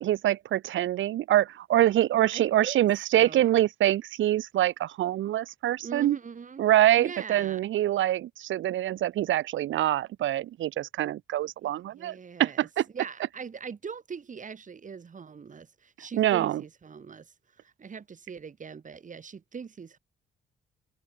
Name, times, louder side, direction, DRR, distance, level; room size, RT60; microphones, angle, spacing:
voice 1, 0.0-6.2 6.6-12.8 16.2-16.6, right 13 dB, 75° right, 1.3 m, -25 dB
voice 2, 2.3-2.8 3.1-3.5 5.8-7.6 11.8-12.7 12.9-20.0, right 6 dB, 40° right, 4.0 m, -41 dB
cardioid pair, 90°, 20 cm